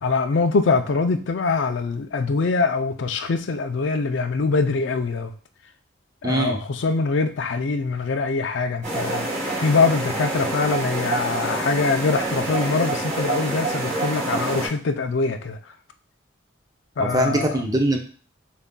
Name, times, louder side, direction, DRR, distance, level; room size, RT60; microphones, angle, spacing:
voice 1, 0.0-5.3 6.2-9.3 9.6-15.6 17.0-17.6, left 4 dB, 70° left, 8 dB, 0.4 m, -23 dB
voice 2, 6.2-6.6 17.0-18.0, right 1 dB, 20° right, 3 dB, 0.5 m, -22 dB
sound 1, 8.8-14.7, right 2 dB, 40° right, 1.9 m, -27 dB
6.9 x 2.6 x 2.2 m, 0.41 s
head